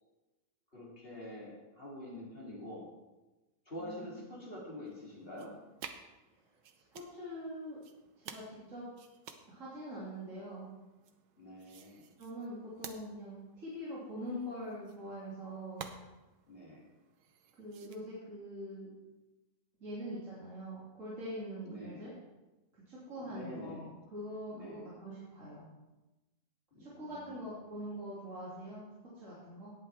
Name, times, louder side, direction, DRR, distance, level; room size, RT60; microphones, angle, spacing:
voice 1, 0.7-2.9 3.7-5.5 11.4-12.1 16.5-16.8 21.6-22.0 23.2-23.9 24.5-24.8 26.7-27.4, left 1 dB, 30° left, -5 dB, 3.3 m, -46 dB
voice 2, 3.8-4.3 6.7-7.8 8.2-8.9 9.5-10.7 12.2-15.9 17.6-18.9 19.8-22.1 22.7-25.7 26.8-29.7, equal, 45° right, -8 dB, 3.1 m, -44 dB
sound 1, 4.9-18.0, right 7 dB, 85° right, 1.5 m, -54 dB
17.5 x 8.5 x 3.5 m, 1.1 s
omnidirectional pair, 1.8 m